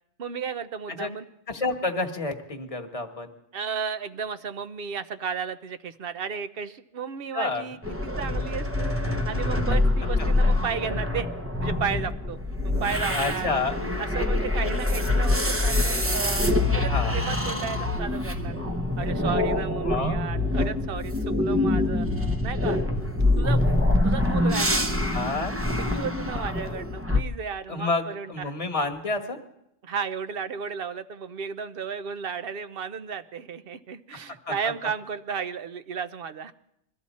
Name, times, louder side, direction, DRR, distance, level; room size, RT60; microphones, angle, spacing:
voice 1, 0.2-1.2 3.5-8.9 9.3-11.3 11.6-12.4 12.6-13.5 14.0-18.6 19.0-22.1 22.4-22.8 23.4-23.6 24.0-25.2 25.8-28.5 29.8-36.5, right 6 dB, 55° right, 12 dB, 0.8 m, -33 dB
voice 2, 1.5-3.3 7.3-7.7 10.2-10.3 13.1-13.8 16.8-17.2 19.8-20.2 25.1-25.6 27.7-29.4 34.5-34.7, left 3 dB, 30° left, 4 dB, 1.3 m, -29 dB
sound 1, 7.8-27.2, left 2 dB, 15° right, 0.7 m, -25 dB
22.0 x 13.5 x 4.2 m, 0.79 s
omnidirectional pair, 1.2 m